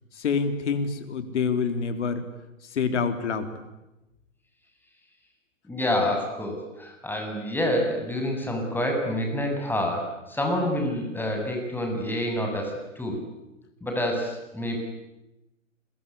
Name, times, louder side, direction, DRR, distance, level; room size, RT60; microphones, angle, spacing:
voice 1, 0.1-2.2 2.6-3.5, left 5 dB, 60° left, 8 dB, 3.9 m, -27 dB
voice 2, 5.7-13.2 13.8-14.8, left 1 dB, 5° left, 2 dB, 7.4 m, -28 dB
30.0 x 23.0 x 8.6 m, 0.95 s
figure-of-eight pair, 115°, 39 cm